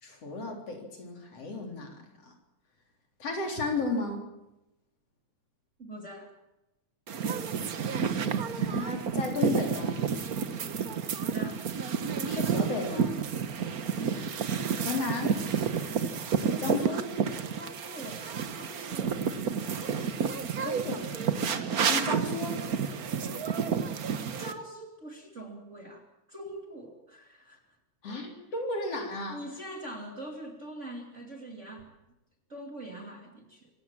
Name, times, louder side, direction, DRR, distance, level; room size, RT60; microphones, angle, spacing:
voice 1, 0.0-2.3 3.2-4.3 8.6-10.0 12.3-13.2 14.8-15.3 16.6-17.1 20.6-21.1 21.8-22.6 28.0-29.4, left 3 dB, 55° left, 2 dB, 4.7 m, -34 dB
voice 2, 5.8-6.3 11.2-11.6 13.8-14.3 15.7-16.1 16.7-17.0 17.5-19.2 23.5-23.7 24.4-27.6 29.3-31.9 32.5-33.7, right 1 dB, 25° right, 2 dB, 2.9 m, -44 dB
sound 1, 7.1-24.5, right 6 dB, 90° right, 0.8 m, -30 dB
25.5 x 16.5 x 7.3 m, 0.93 s
omnidirectional pair, 3.4 m